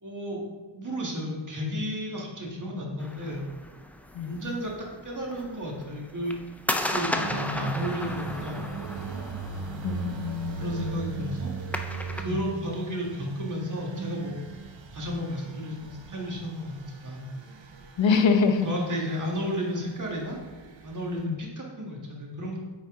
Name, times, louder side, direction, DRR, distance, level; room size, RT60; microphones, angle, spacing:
voice 1, 0.0-0.4 0.7-3.5 4.2-4.7 5.0-6.3 6.6-8.6 9.6-10.0 10.6-11.5 12.2-14.4 14.9-17.3 18.6-20.4 20.8-22.6, equal, 40° right, -2 dB, 1.6 m, -33 dB
sound 1, 3.0-12.2, left 1 dB, 5° left, 0.4 m, -36 dB
sound 2, 7.2-21.2, right 4 dB, 70° right, 0.7 m, -39 dB
voice 2, 9.8-10.9 12.3-12.4 18.0-18.7 21.2-21.4, left 5 dB, 70° left, 6 dB, 0.7 m, -25 dB
8.8 x 4.0 x 3.6 m, 1.3 s
wide cardioid pair, 85°, 47 cm